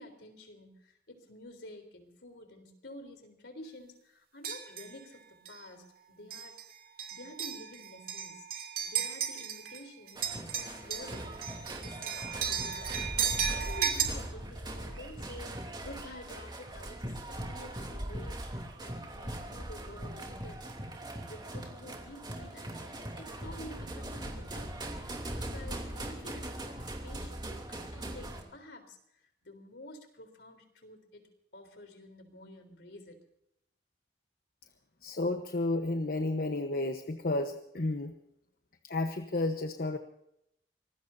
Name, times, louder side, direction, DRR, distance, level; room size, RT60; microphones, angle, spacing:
voice 1, 0.0-6.6 7.1-8.5 8.8-20.6 21.3-24.8 25.2-33.2, left 1 dB, 75° left, 6 dB, 3.8 m, -50 dB
sound 1, 4.4-4.9 5.5-5.6 6.3-6.6 7.0-9.8 10.1-14.0, right 8 dB, 60° right, 2.7 m, -34 dB
sound 2, 10.1-28.4, right 1 dB, 25° right, 2.9 m, -40 dB
voice 2, 35.0-38.2 38.8-40.0, left 2 dB, 55° left, 6 dB, 1.1 m, -32 dB
25.5 x 20.0 x 2.7 m, 0.77 s
head